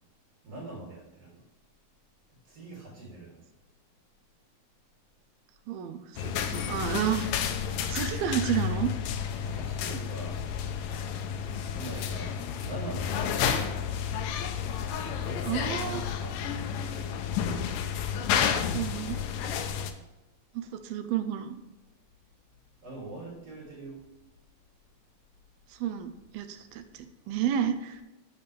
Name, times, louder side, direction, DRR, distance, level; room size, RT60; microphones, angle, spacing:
voice 1, 0.4-1.4 2.5-3.4 9.4-10.4 11.3-14.0 15.0-16.7 22.8-24.0, right 2 dB, 40° right, -4 dB, 3.8 m, -42 dB
voice 2, 5.7-7.3 7.9-8.9 15.5-16.0 18.7-19.2 20.5-21.6 25.7-28.0, right 9 dB, 80° right, 9 dB, 2.5 m, -31 dB
sound 1, 6.2-19.9, left 8 dB, 80° left, 2.1 m, -31 dB
12.5 x 7.0 x 3.4 m, 0.99 s
omnidirectional pair, 4.4 m